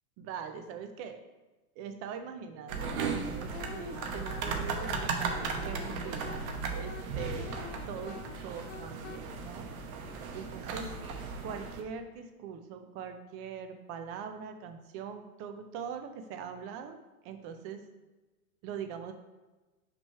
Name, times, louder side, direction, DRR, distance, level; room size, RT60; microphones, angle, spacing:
voice 1, 0.2-1.2 1.8-7.6 7.9-9.7 10.3-10.9 11.4-17.0 17.2-17.8 18.6-19.1, right 7 dB, 30° right, 7 dB, 0.6 m, -42 dB
sound 1, 2.7-11.8, right 4 dB, 65° right, 1.1 m, -36 dB
Wind instrument woodwind instrument, 3.5-9.2, left 9 dB, 50° left, 0.7 m, -46 dB
5.9 x 3.2 x 5.6 m, 1.2 s
hypercardioid pair, 135°, 44 cm